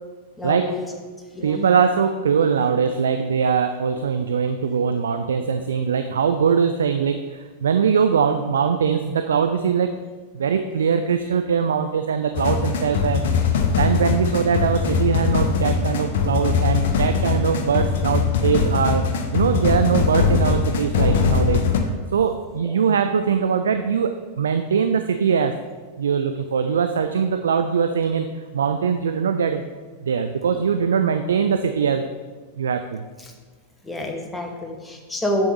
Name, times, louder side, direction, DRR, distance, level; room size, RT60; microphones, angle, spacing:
voice 1, 0.4-0.8 1.3-1.7 22.7-22.9 33.2-33.3 33.8-35.5, left 1 dB, 10° left, 1 dB, 1.0 m, -28 dB
voice 2, 1.4-9.9 10.3-13.2 13.7-21.7 22.1-25.6 26.0-29.6 30.0-32.1 32.6-33.0, right 6 dB, 65° right, 8 dB, 0.3 m, -21 dB
sound 1, 12.4-21.8, left 5 dB, 55° left, 0.7 m, -21 dB
7.9 x 7.0 x 3.0 m, 1.4 s
figure-of-eight pair, 90°, 0 cm